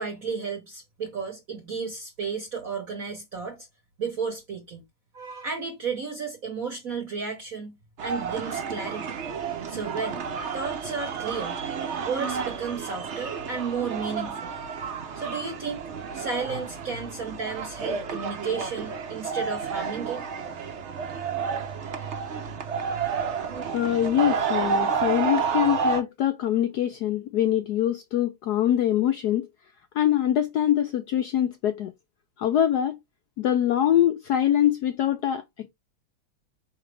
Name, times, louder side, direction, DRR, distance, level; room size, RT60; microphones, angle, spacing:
voice 1, 0.0-3.7 4.0-4.8 5.1-9.2 9.7-10.2 10.5-11.6 12.0-14.5 15.2-15.9 16.1-20.3, right 5 dB, 55° right, 1.1 m, -33 dB
sound 1, 8.0-26.0, right 6 dB, 85° right, 0.6 m, -30 dB
voice 2, 23.7-29.5 30.0-31.9 32.4-33.0 33.4-35.7, left 11 dB, 80° left, 0.9 m, -24 dB
4.8 x 3.3 x 3.2 m
omnidirectional pair, 2.3 m